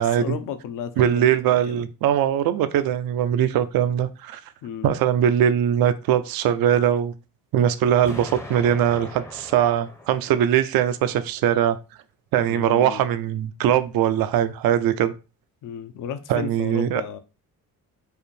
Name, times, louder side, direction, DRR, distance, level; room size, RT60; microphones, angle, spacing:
voice 1, 0.0-1.8 4.6-4.9 12.5-13.1 15.6-17.2, left 8 dB, 65° left, 0.6 m, -34 dB
voice 2, 1.0-4.4 4.8-7.1 7.5-11.8 12.3-15.1 16.3-17.0, right 10 dB, 80° right, 0.5 m, -21 dB
Explosion, 8.0-11.0, left 1 dB, 10° left, 0.6 m, -40 dB
4.8 x 2.5 x 3.2 m
cardioid pair, 145°, 35 cm